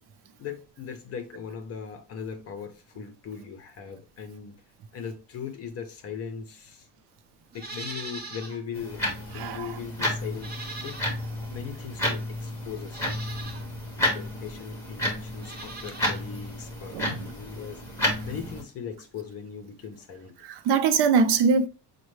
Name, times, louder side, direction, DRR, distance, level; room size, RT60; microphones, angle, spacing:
voice 1, 0.4-4.5 4.9-6.9 7.5-9.1 9.3-10.6 10.8-11.0 11.4-13.0 14.0-17.8 18.2-20.4, left 7 dB, 35° left, 0.6 m, -39 dB
Livestock farm animals working animals, 7.5-8.6 9.0-9.1 10.3-11.4 12.2-12.3 12.8-13.6 15.3-16.2 16.5-16.6, right 3 dB, 25° right, 0.8 m, -40 dB
sound 1, 8.7-18.6, left 1 dB, 5° left, 1.4 m, -32 dB
voice 2, 9.3-9.7 16.9-17.2 20.4-21.7, right 5 dB, 75° right, 0.7 m, -22 dB
6.3 x 2.2 x 3.1 m
cardioid pair, 175°, 41 cm